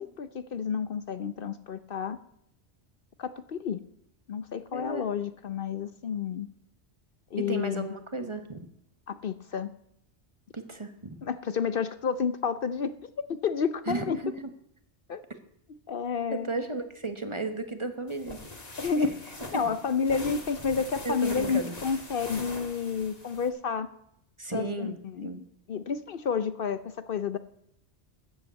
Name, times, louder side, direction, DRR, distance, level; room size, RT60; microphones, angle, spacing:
voice 1, 0.0-2.2 3.2-3.8 4.3-6.5 7.3-7.9 9.1-9.7 11.2-14.2 15.1-15.2 15.9-16.5 18.8-19.1 19.5-23.9 24.5-25.3 25.7-27.4, left 6 dB, 60° left, 13 dB, 0.8 m, -30 dB
voice 2, 4.7-5.0 7.4-8.7 10.5-11.2 13.9-14.5 16.3-18.4 19.0-19.1 19.5-19.7 21.0-21.7 24.4-25.4, right 3 dB, 30° right, 7 dB, 1.3 m, -34 dB
sound 1, 18.1-23.5, left 2 dB, 35° left, 1.8 m, -42 dB
13.5 x 8.0 x 8.1 m, 0.74 s
omnidirectional pair, 1.1 m